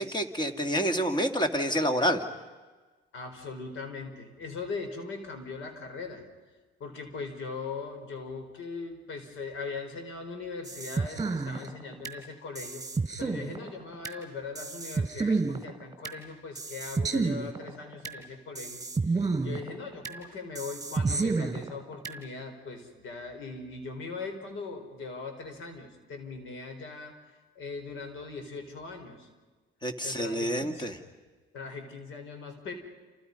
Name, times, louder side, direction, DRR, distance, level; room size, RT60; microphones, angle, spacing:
voice 1, 0.0-2.2 29.8-31.0, equal, 20° left, 6 dB, 2.4 m, -28 dB
voice 2, 3.1-6.2 6.8-12.8 13.2-18.8 19.4-27.1 27.5-29.3 30.0-30.9 31.5-32.7, left 4 dB, 80° left, 6 dB, 4.6 m, -40 dB
sound 1, 10.7-12.2 12.6-14.2 14.6-16.2 16.6-18.2 18.6-20.2 20.6-22.2, right 3 dB, 20° right, 3.1 m, -30 dB
29.0 x 28.0 x 5.5 m, 1.3 s
cardioid pair, 90°, 20 cm